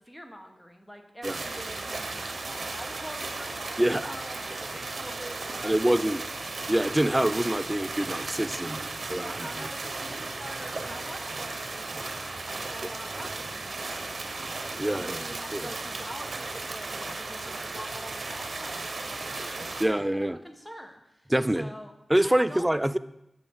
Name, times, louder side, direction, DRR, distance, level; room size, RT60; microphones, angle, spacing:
voice 1, 0.0-6.3 8.6-21.9 22.2-22.7, equal, 10° left, 4 dB, 1.0 m, -45 dB
sound 1, 1.2-19.9, right 3 dB, 65° right, 0.8 m, -35 dB
voice 2, 3.8-4.1 5.6-6.2 6.7-8.8 9.1-9.7 14.8-15.2 15.5-15.7 19.8-20.4 21.3-21.7 22.1-23.0, right 1 dB, 15° right, 14 dB, 0.3 m, -25 dB
8.2 x 6.4 x 3.5 m, 0.86 s
cardioid pair, 50°, 0 cm